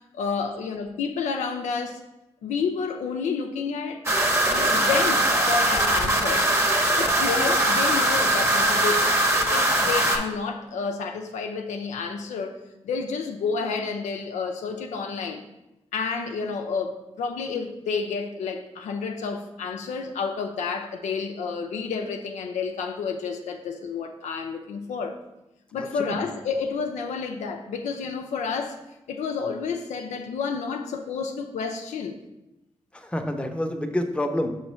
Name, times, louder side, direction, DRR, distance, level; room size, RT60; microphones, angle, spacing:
voice 1, 0.0-2.0 2.4-4.0 4.5-6.4 6.9-15.4 15.9-25.2 25.7-28.8 29.1-32.2, left 5 dB, 90° left, 4 dB, 0.5 m, -30 dB
sound 1, 4.1-10.2, right 1 dB, 25° right, 1.1 m, -21 dB
voice 2, 25.7-26.2 32.9-34.5, left 1 dB, 10° left, 5 dB, 0.8 m, -28 dB
5.7 x 3.1 x 5.5 m, 0.94 s
cardioid pair, 50°, 12 cm